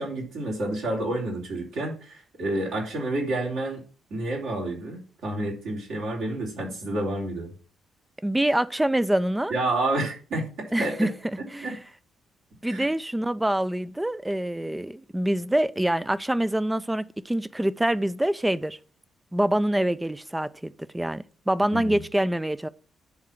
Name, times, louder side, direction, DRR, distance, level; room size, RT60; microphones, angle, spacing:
voice 1, 0.0-3.8 4.1-7.5 9.5-11.1 11.6-11.7 12.6-12.9 21.7-22.0, right 2 dB, 60° right, 3.4 m, -29 dB
voice 2, 8.2-9.5 10.7-11.1 11.5-11.8 12.6-18.8 19.3-22.7, right 1 dB, 10° right, 0.6 m, -25 dB
10.5 x 3.8 x 7.3 m
figure-of-eight pair, 40°, 0 cm